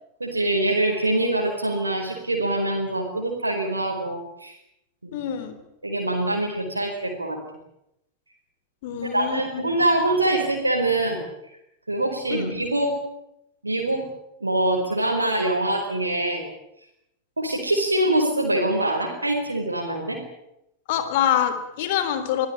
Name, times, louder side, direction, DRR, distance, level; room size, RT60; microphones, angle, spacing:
voice 1, 0.2-4.5 5.0-5.2 5.8-7.4 9.0-11.3 11.9-12.9 13.6-14.0 14.4-16.4 17.4-20.2, right 1 dB, 80° right, 1 dB, 4.7 m, -24 dB
voice 2, 5.1-5.6 8.8-9.6 12.3-12.5 20.9-22.5, left 10 dB, 50° left, 10 dB, 3.8 m, -25 dB
25.0 x 17.0 x 9.0 m, 0.82 s
figure-of-eight pair, 90°, 0 cm